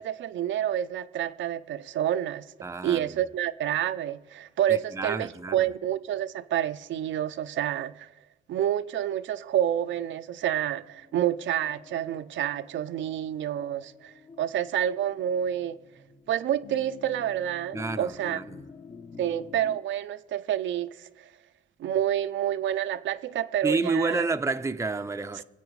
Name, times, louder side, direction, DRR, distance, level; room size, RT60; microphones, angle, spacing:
voice 1, 0.0-2.5 2.8-8.1 8.5-15.8 16.3-18.4 19.2-21.3 21.8-24.2, right 11 dB, 70° right, 0.6 m, -28 dB
voice 2, 2.6-3.2 4.7-5.7 17.7-18.7 23.6-25.4, right 3 dB, 15° right, 0.6 m, -30 dB
sound 1, 9.9-19.8, left 5 dB, 35° left, 1.1 m, -49 dB
24.0 x 8.4 x 4.8 m
cardioid pair, 90°, 20 cm